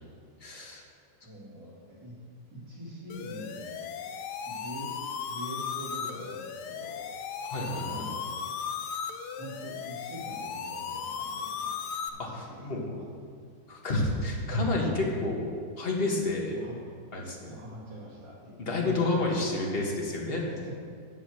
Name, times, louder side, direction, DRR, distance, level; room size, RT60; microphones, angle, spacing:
voice 1, 0.4-0.8 7.4-8.1 12.2-12.9 13.7-15.5 15.8-16.6 17.1-17.5 18.7-20.4, left 2 dB, 35° left, -2 dB, 1.5 m, -29 dB
voice 2, 1.2-2.2 2.5-3.8 4.5-4.9 5.3-7.1 7.8-8.3 9.4-11.8 12.1-13.0 16.5-16.9 17.5-19.6 20.5-20.7, right 1 dB, 85° right, -7 dB, 3.3 m, -44 dB
sound 1, 3.1-12.1, left 7 dB, 70° left, 1.1 m, -36 dB
7.7 x 7.3 x 6.4 m, 2.1 s
omnidirectional pair, 1.9 m